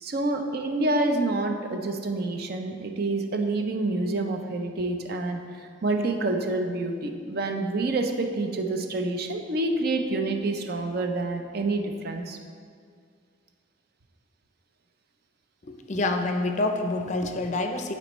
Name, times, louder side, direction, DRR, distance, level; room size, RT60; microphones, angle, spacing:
voice 1, 0.0-5.4 5.8-12.4, right 2 dB, 55° right, 4 dB, 0.5 m, -27 dB
voice 2, 15.9-17.9, left 2 dB, 40° left, 5 dB, 0.5 m, -27 dB
11.0 x 4.3 x 3.1 m, 2.1 s
head